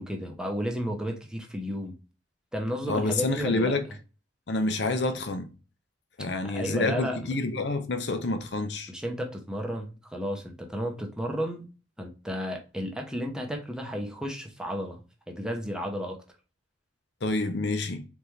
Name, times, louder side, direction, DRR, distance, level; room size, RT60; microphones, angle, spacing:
voice 1, 0.0-1.9 2.5-3.8 6.4-7.3 8.9-11.7 12.0-15.0 15.3-16.2, equal, 5° right, 0.8 m, -33 dB
voice 2, 2.9-3.8 4.5-5.5 6.2-8.9 17.2-18.0, left 2 dB, 60° left, 0.7 m, -28 dB
4.1 x 3.5 x 3.2 m
head